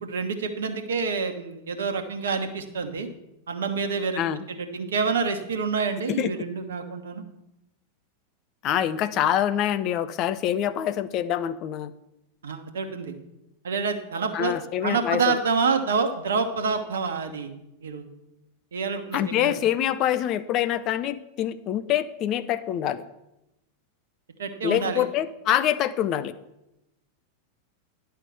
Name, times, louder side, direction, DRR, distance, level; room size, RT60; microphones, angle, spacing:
voice 1, 0.0-3.1 3.5-4.2 4.5-7.2 12.4-13.1 13.6-14.5 14.8-17.5 17.8-18.1 18.7-19.5 24.4-25.0, right 5 dB, 65° right, 7 dB, 1.1 m, -27 dB
voice 2, 8.6-11.9 14.3-15.3 19.1-23.0 24.6-26.3, left 11 dB, 35° left, 12 dB, 0.5 m, -25 dB
11.0 x 5.7 x 6.8 m, 0.90 s
figure-of-eight pair, 90°, 0 cm